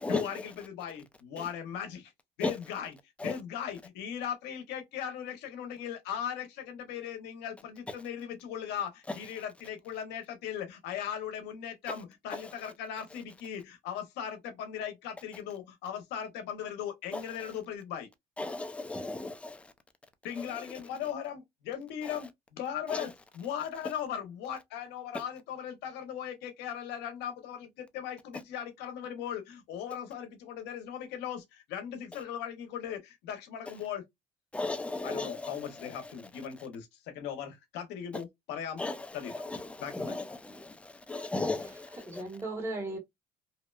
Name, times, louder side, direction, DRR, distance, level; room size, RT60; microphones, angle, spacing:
voice 1, 0.1-2.1 2.4-3.0 3.2-18.1 20.2-34.0 35.0-38.8 39.1-39.3 39.8-40.2, left 9 dB, 90° left, 0.7 m, -38 dB
voice 2, 18.4-19.0 34.5-35.3 38.8-38.9 39.9-40.1 41.1-41.7, left 2 dB, 5° left, 0.4 m, -33 dB
voice 3, 41.4-43.0, right 2 dB, 15° right, 1.2 m, -38 dB
2.7 x 2.1 x 2.2 m
cardioid pair, 110°, 17 cm